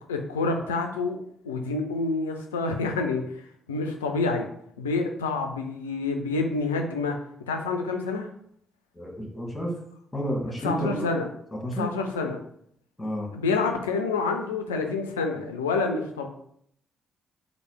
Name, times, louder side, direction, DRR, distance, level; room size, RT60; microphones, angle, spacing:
voice 1, 0.1-4.5 4.8-7.2 7.5-8.3 10.6-11.3 11.7-12.4 13.3-16.3, left 3 dB, 85° left, 4 dB, 0.3 m, -28 dB
voice 2, 8.9-9.7 10.1-11.1 11.6-11.9 13.0-13.3, equal, 15° left, 1 dB, 1.2 m, -30 dB
3.2 x 2.6 x 4.4 m, 0.67 s
figure-of-eight pair, 40°, 0 cm